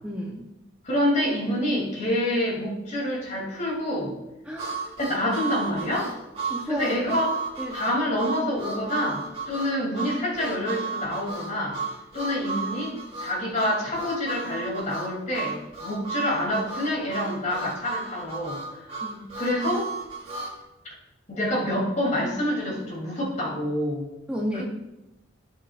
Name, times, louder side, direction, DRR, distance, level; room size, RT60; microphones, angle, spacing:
voice 1, 0.0-0.5 4.5-4.8 6.5-7.0 7.6-7.8 19.0-19.3 24.3-24.6, equal, 5° right, -2 dB, 0.7 m, -32 dB
voice 2, 0.8-4.2 5.0-6.1 6.7-7.3 7.7-11.8 12.1-18.6 19.3-19.9 21.3-24.1 24.5-24.6, left 1 dB, 40° left, -3 dB, 2.8 m, -27 dB
Harmonica, 4.6-20.6, right 4 dB, 35° right, 2.7 m, -34 dB
15.0 x 6.0 x 2.4 m, 0.96 s
head